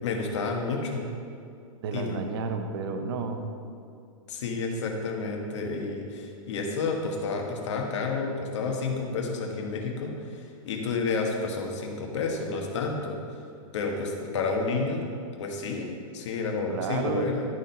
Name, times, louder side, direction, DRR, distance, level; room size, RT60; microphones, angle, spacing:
voice 1, 0.0-1.1 1.9-2.2 4.3-13.2 13.7-15.0 15.4-17.4, left 4 dB, 55° left, 1 dB, 1.4 m, -30 dB
voice 2, 1.8-3.5 16.7-17.4, right 4 dB, 45° right, 6 dB, 0.7 m, -31 dB
11.5 x 4.4 x 5.3 m, 2.4 s
supercardioid pair, 175°, 18 cm